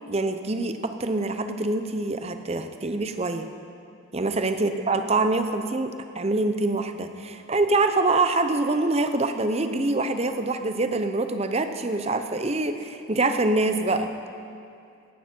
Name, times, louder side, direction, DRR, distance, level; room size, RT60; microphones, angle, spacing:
voice 1, 0.1-3.5 4.1-14.1, right 2 dB, 30° right, 8 dB, 0.7 m, -25 dB
16.5 x 12.5 x 4.5 m, 2.5 s
head